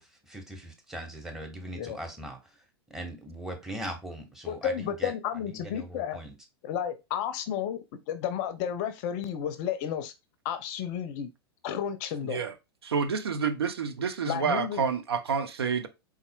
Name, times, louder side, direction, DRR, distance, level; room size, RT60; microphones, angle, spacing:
voice 1, 0.0-2.6 2.9-5.1 5.5-6.3, equal, 5° right, 1.0 m, -40 dB
voice 2, 4.5-6.2 6.6-7.8 8.1-10.1 10.4-11.3 11.6-12.4 14.3-14.8, left 9 dB, 40° left, 0.5 m, -32 dB
voice 3, 12.2-12.5 12.8-15.9, right 6 dB, 75° right, 0.6 m, -29 dB
4.1 x 3.6 x 2.2 m
figure-of-eight pair, 100°, 14 cm